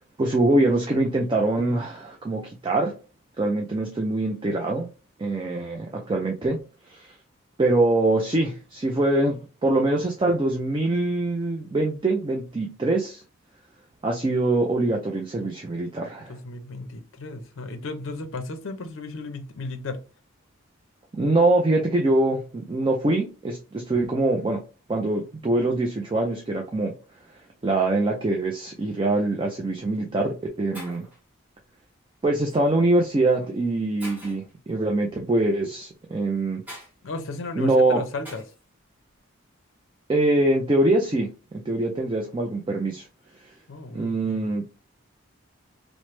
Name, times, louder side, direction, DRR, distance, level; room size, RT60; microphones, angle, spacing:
voice 1, 0.2-2.9 3.4-4.9 5.2-6.6 6.9-7.1 7.6-13.2 14.0-16.3 21.2-24.6 24.9-26.9 27.6-31.0 32.2-36.6 37.6-38.0 40.1-43.1 43.9-44.6, right 2 dB, 25° right, 0.3 m, -23 dB
voice 2, 16.3-20.0 37.0-38.4 43.7-44.5, left 3 dB, 65° left, 0.5 m, -35 dB
Shatter, 30.7-31.2 32.5-32.7 33.3-33.4 34.0-34.5 36.7-36.9 38.2-38.6, equal, 10° right, 1.1 m, -42 dB
3.0 x 2.0 x 3.1 m
head